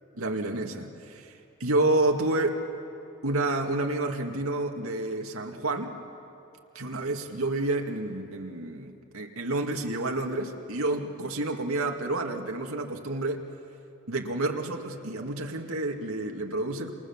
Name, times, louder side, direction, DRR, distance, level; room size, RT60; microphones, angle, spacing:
voice 1, 0.2-1.3 1.6-2.6 3.2-5.9 6.7-13.4 14.1-16.9, right 2 dB, 90° right, 2 dB, 2.2 m, -29 dB
28.5 x 28.0 x 7.3 m, 2.8 s
head